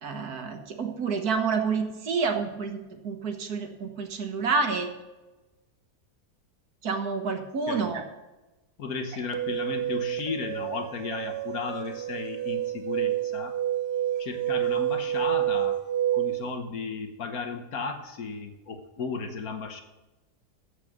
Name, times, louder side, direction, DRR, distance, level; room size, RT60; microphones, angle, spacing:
voice 1, 0.0-4.9 6.8-8.0, right 5 dB, 65° right, 5 dB, 1.8 m, -29 dB
voice 2, 8.8-13.6 14.2-15.8 16.1-19.8, left 4 dB, 60° left, 6 dB, 1.5 m, -34 dB
sound 1, 9.3-16.5, right 12 dB, 85° right, 1.3 m, -29 dB
14.5 x 4.9 x 6.6 m, 1.1 s
omnidirectional pair, 1.8 m